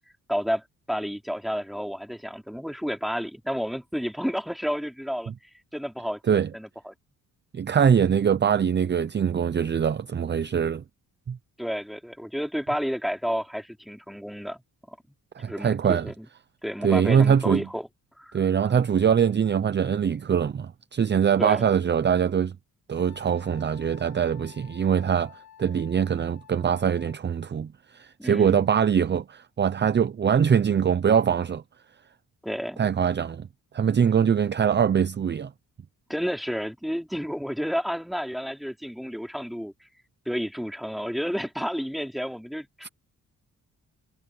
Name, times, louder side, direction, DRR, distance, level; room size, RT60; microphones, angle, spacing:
voice 1, 0.3-5.3 5.7-6.9 11.6-14.6 15.5-16.3 16.6-17.9 18.2-18.4 21.4-21.7 28.2-28.7 32.4-32.8 36.1-39.7 40.3-42.9, equal, ahead, 3.8 m, -31 dB
voice 2, 7.5-10.8 11.3-11.4 15.4-16.1 16.8-17.7 18.3-22.6 22.9-31.6 32.8-33.5 33.7-35.5 42.8-42.9, right 7 dB, 35° right, 0.7 m, -23 dB
Wind instrument woodwind instrument, 23.0-27.2, left 10 dB, 60° left, 6.0 m, -51 dB
cardioid pair, 105°, 33 cm